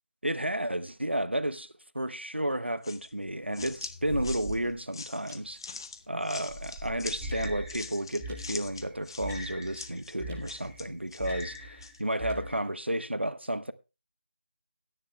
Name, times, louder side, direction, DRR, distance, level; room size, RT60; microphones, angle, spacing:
voice 1, 0.2-5.6 6.1-13.7, right 1 dB, 85° right, 1.0 m, -32 dB
sound 1, 2.8-12.0, left 4 dB, 25° left, 0.5 m, -44 dB
sound 2, 3.4-4.8 5.3-5.6 6.3-8.4 8.9-9.0 9.3-9.6 10.3-10.4 10.7-10.8 11.3-11.4 12.1-12.6, right 1 dB, 10° right, 0.9 m, -41 dB
sound 3, 7.2-12.6, equal, 5° left, 1.8 m, -42 dB
19.5 x 10.0 x 2.2 m
figure-of-eight pair, 160°, 6 cm